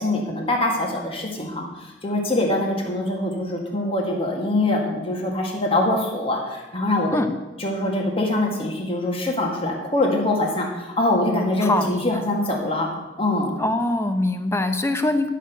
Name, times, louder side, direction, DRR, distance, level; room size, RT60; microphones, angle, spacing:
voice 1, 0.0-7.2 7.6-12.9 13.2-13.5, left 1 dB, 30° left, 0 dB, 1.8 m, -23 dB
voice 2, 11.6-12.2 13.6-15.3, left 2 dB, 15° left, 7 dB, 0.8 m, -23 dB
11.0 x 6.7 x 6.6 m, 1.1 s
head